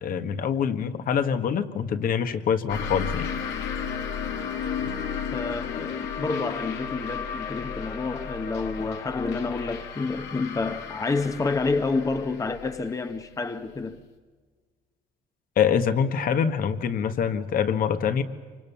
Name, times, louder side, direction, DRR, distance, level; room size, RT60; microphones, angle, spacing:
voice 1, 0.0-3.3 15.6-18.2, left 7 dB, 55° left, 1.5 m, -25 dB
sound 1, 2.7-13.9, left 7 dB, 85° left, 2.4 m, -34 dB
voice 2, 5.3-14.0, left 3 dB, 20° left, 1.0 m, -29 dB
27.5 x 25.0 x 7.2 m
cardioid pair, 110°, 17 cm